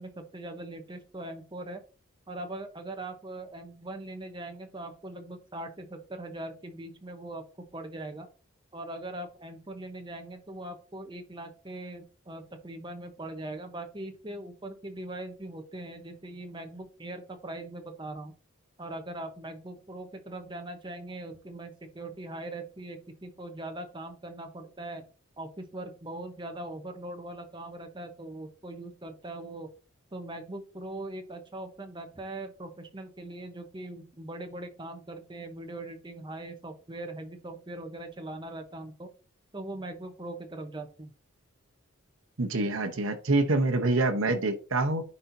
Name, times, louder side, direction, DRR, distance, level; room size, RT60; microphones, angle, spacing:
voice 1, 0.0-1.8 2.3-7.4 7.7-8.3 8.7-18.3 18.8-25.0 25.4-29.7 30.1-39.1 39.5-41.1, right 2 dB, 20° right, 5 dB, 0.8 m, -41 dB
voice 2, 42.4-45.0, right 2 dB, 70° right, 5 dB, 0.9 m, -26 dB
9.7 x 4.2 x 2.6 m, 0.37 s
head